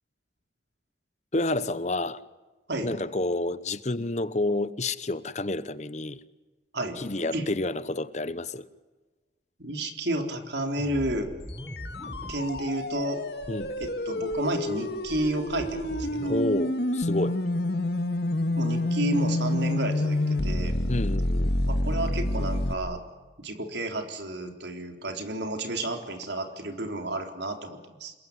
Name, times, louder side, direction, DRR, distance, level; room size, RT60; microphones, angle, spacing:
voice 1, 1.3-2.2 2.8-6.2 7.0-8.7 13.5-13.7 16.3-17.4 20.9-21.5, left 2 dB, 40° left, 0.9 m, -29 dB
voice 2, 9.6-11.3 12.3-13.2 13.5-16.4 18.6-20.8 21.7-23.0 23.4-28.1, right 1 dB, 70° right, 3.9 m, -31 dB
sound 1, 10.8-12.7 13.0-13.1 13.4-13.9 14.3-16.4, equal, 5° left, 4.5 m, -41 dB
sound 2, 11.4-22.7, left 1 dB, 60° left, 1.8 m, -28 dB
27.5 x 22.0 x 9.7 m
head